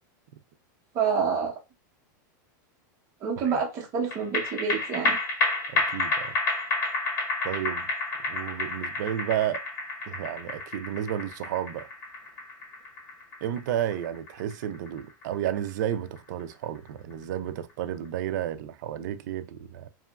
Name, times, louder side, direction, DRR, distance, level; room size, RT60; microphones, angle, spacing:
voice 1, 0.9-1.5 3.2-5.2, right 6 dB, 25° right, 0.9 m, -27 dB
sound 1, 4.1-16.8 17.1-17.2, left 2 dB, 65° left, 1.4 m, -30 dB
voice 2, 5.7-6.4 7.4-7.9 8.3-9.6 10.1-11.9 13.4-19.9, right 11 dB, 60° right, 0.4 m, -32 dB
2.9 x 2.3 x 2.3 m
supercardioid pair, 160°, 11 cm